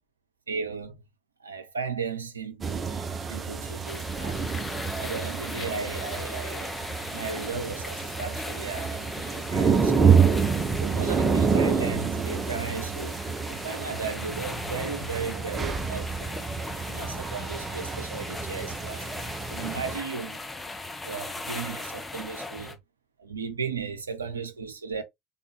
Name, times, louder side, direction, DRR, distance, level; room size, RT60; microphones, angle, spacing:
voice 1, 0.5-1.0 1.4-2.8 3.3-4.5 5.0-6.7 7.1-10.1 10.8-13.2 13.4-16.3 16.8-19.1 19.5-20.4 21.0-22.8 23.2-25.0, right 5 dB, 80° right, 0.6 m, -35 dB
sound 1, 2.6-20.0, right 5 dB, 25° right, 0.9 m, -28 dB
sound 2, 3.8-22.7, left 2 dB, 15° left, 1.2 m, -39 dB
4.0 x 3.7 x 3.3 m
figure-of-eight pair, 65°, 0 cm